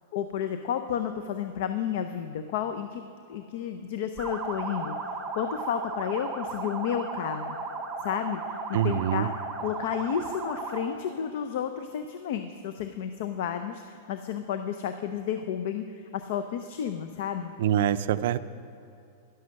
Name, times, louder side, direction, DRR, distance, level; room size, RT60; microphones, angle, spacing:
voice 1, 0.1-3.0 3.3-4.9 5.4-7.6 8.0-8.4 8.8-9.3 9.6-15.8 16.1-17.5, left 9 dB, 50° left, 8 dB, 0.6 m, -31 dB
sound 1, 4.2-11.0, right 3 dB, 10° right, 0.8 m, -35 dB
voice 2, 8.7-9.3 17.6-18.4, right 10 dB, 55° right, 13 dB, 0.5 m, -25 dB
11.0 x 11.0 x 6.4 m, 2.7 s
supercardioid pair, 180°, 0 cm